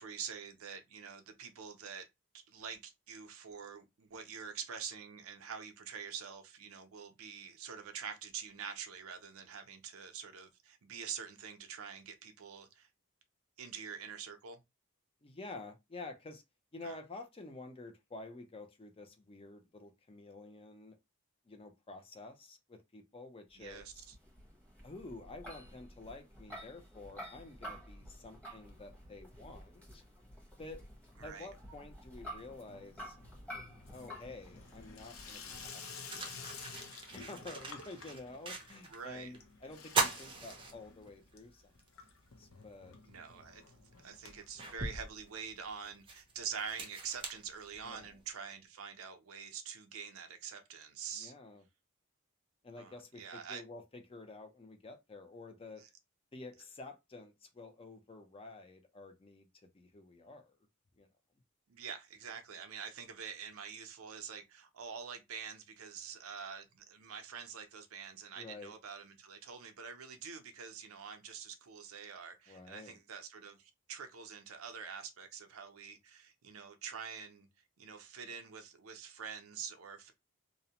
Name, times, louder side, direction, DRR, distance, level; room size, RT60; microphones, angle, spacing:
voice 1, 0.0-2.1 2.3-12.9 13.6-14.6 16.8-17.0 23.5-24.1 31.2-31.5 38.9-39.3 43.1-51.3 52.8-53.6 55.8-55.9 61.7-77.5 77.8-80.1, right 6 dB, 85° right, 0.6 m, -46 dB
voice 2, 15.2-16.4 16.7-21.0 21.5-24.1 24.8-30.0 30.6-30.9 31.2-33.2 33.9-41.7 42.4-42.9 47.8-48.1 51.1-51.6 52.6-55.9 56.3-60.6 61.0-61.1 68.4-68.7 72.5-73.0, left 2 dB, 25° left, 0.5 m, -50 dB
sound 1, 23.6-35.7, equal, 5° left, 1.0 m, -51 dB
Water tap faucet / Sink (filling or washing), 28.5-29.3 29.6-30.1 30.4-45.7 46.0-46.1 46.3-46.4 46.6-46.7 47.8-47.9, left 4 dB, 75° left, 0.6 m, -53 dB
sound 2, 35.0-35.1 35.7-39.0 39.3-39.4 39.8-41.3 41.8-41.9 43.3-43.4 44.0-48.2, right 4 dB, 25° right, 0.5 m, -39 dB
2.6 x 2.1 x 2.8 m
head